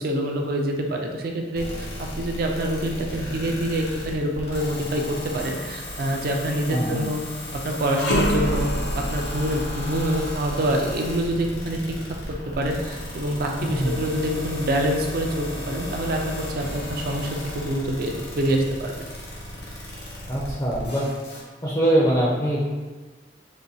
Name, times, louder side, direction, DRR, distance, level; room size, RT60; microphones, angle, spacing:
voice 1, 0.0-1.9 2.2-7.2 7.6-8.7 8.9-11.8 12.6-17.3 17.5-18.9, right 1 dB, 55° right, 2 dB, 0.4 m, -26 dB
sound 1, 1.5-21.4, left 1 dB, 65° left, 0.9 m, -35 dB
voice 2, 6.7-7.1 13.6-14.0 20.3-21.1 21.6-22.7, right 1 dB, 20° left, -5 dB, 0.5 m, -23 dB
sound 2, 7.8-17.0 17.4-17.6 18.5-19.4, equal, 85° left, 0.5 m, -31 dB
4.0 x 2.3 x 2.7 m, 1.3 s
head